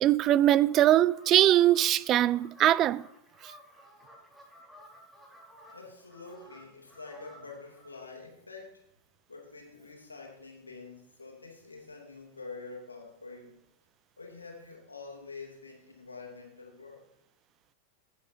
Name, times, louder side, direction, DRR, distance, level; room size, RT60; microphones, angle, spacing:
voice 1, 0.0-3.0, right 13 dB, 35° right, 0.3 m, -22 dB
sound 1, 0.7-8.0, equal, 5° right, 5.0 m, -55 dB
voice 2, 5.7-8.8 9.3-13.7 14.2-17.1, left 3 dB, 80° left, 2.7 m, -46 dB
15.5 x 10.5 x 2.8 m
figure-of-eight pair, 90°, 0 cm